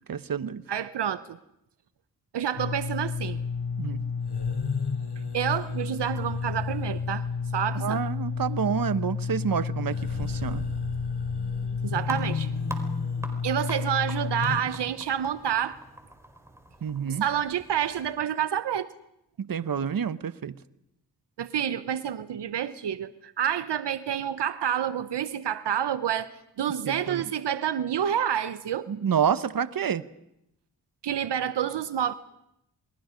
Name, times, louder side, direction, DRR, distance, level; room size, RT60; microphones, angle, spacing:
voice 1, 0.1-0.6 3.8-4.1 7.8-10.7 16.8-17.2 19.4-20.6 26.9-27.2 28.9-30.0, right 7 dB, 55° right, 14 dB, 1.0 m, -28 dB
voice 2, 0.7-1.4 2.3-3.4 5.3-7.2 7.5-8.0 11.8-12.5 13.4-15.8 17.1-18.9 21.4-28.9 31.0-32.1, right 9 dB, 80° right, 12 dB, 0.8 m, -28 dB
sound 1, 2.6-14.6, left 5 dB, 75° left, 7.5 m, -30 dB
sound 2, 12.0-18.1, right 1 dB, 5° right, 4.7 m, -44 dB
29.5 x 21.5 x 5.1 m, 0.81 s
cardioid pair, 50°, 41 cm